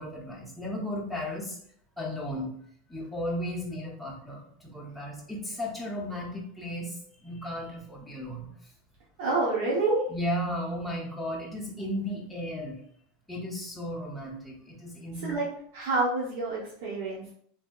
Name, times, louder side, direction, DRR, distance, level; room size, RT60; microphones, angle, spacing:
voice 1, 0.0-1.6 2.0-2.5 2.9-8.5 9.4-9.5 10.1-12.8 13.3-15.4, equal, ahead, -4 dB, 0.6 m, -35 dB
voice 2, 9.2-10.0 15.2-15.4 15.7-17.3, right 3 dB, 65° right, -5 dB, 0.8 m, -28 dB
3.4 x 2.7 x 2.3 m, 0.63 s
supercardioid pair, 170°, 0 cm